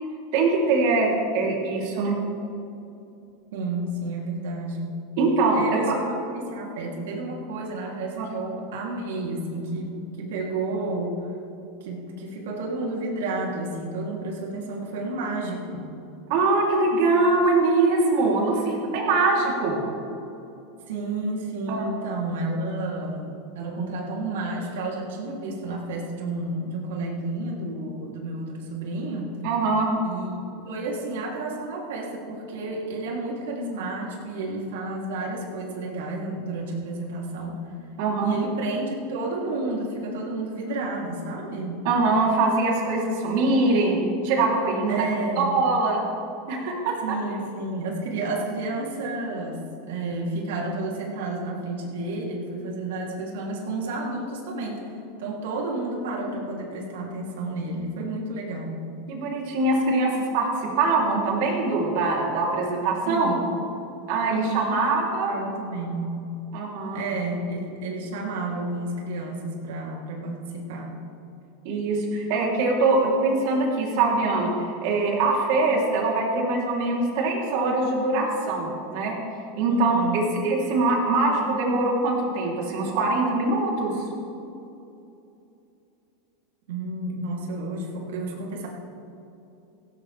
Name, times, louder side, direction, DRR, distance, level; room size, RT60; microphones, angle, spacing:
voice 1, 0.3-2.2 5.2-5.9 8.2-8.3 16.3-19.8 21.7-21.9 29.4-29.9 38.0-38.4 41.8-44.0 44.2-45.0 45.4-46.0 46.5-47.2 59.1-63.4 64.1-65.3 66.5-67.0 71.6-74.5 74.8-79.1 79.6-84.0, right 3 dB, 50° right, -1 dB, 3.2 m, -23 dB
voice 2, 3.5-5.0 5.5-11.3 11.8-15.9 20.9-29.4 30.0-37.6 38.2-41.9 44.9-45.5 47.0-49.6 49.9-58.9 63.0-63.4 64.3-65.0 65.2-66.2 66.9-70.9 79.7-80.3 86.7-88.7, right 2 dB, 80° right, -2 dB, 2.9 m, -31 dB
17.0 x 17.0 x 3.4 m, 2.8 s
supercardioid pair, 175°, 0 cm